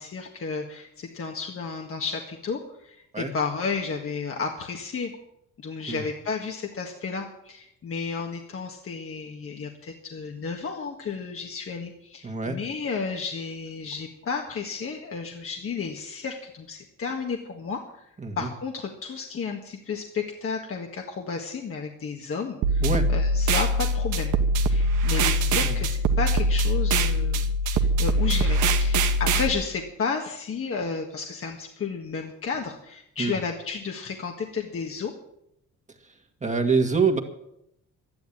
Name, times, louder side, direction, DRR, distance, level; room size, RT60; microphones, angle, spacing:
voice 1, 0.0-5.1 5.6-18.0 18.4-24.3 24.6-35.1, left 5 dB, 45° left, 2 dB, 1.8 m, -32 dB
voice 2, 12.2-12.6 18.2-18.5 22.8-23.1 25.4-25.9 33.2-33.4 36.4-37.2, right 4 dB, 25° right, 4 dB, 2.0 m, -25 dB
sound 1, 22.6-29.5, right 1 dB, 80° right, 1.3 m, -22 dB
12.0 x 10.5 x 8.8 m, 0.79 s
cardioid pair, 90°, 30 cm